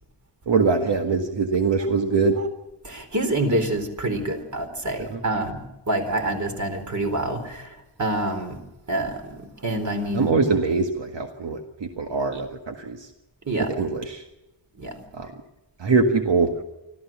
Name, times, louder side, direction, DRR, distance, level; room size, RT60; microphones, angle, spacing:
voice 1, 0.5-2.4 5.0-5.2 10.1-13.1 13.6-14.2 15.1-15.3 15.8-16.5, right 4 dB, 70° right, 4 dB, 1.9 m, -23 dB
voice 2, 2.8-8.6 8.9-10.4 13.5-13.7 14.8-15.0, right 1 dB, 40° right, 6 dB, 4.0 m, -27 dB
25.5 x 15.0 x 7.4 m, 0.99 s
wide cardioid pair, 135°, 45 cm